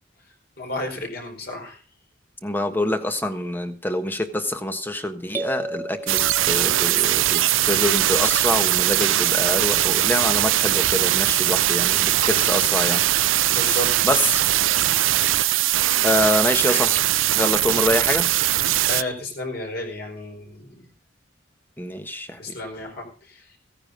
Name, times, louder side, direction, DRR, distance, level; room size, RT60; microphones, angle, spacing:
voice 1, 0.6-1.8 13.5-14.3 18.9-20.9 22.4-23.4, left 1 dB, 50° left, 3 dB, 4.8 m, -32 dB
voice 2, 2.4-13.0 14.0-14.4 15.7-17.0 17.3-18.3 21.8-22.6, left 1 dB, 10° left, 8 dB, 1.3 m, -26 dB
sound 1, 5.3-7.2, right 2 dB, 10° right, 0.8 m, -33 dB
sound 2, 6.1-19.0, right 14 dB, 85° right, 0.5 m, -20 dB
16.0 x 9.8 x 5.3 m, 0.37 s
head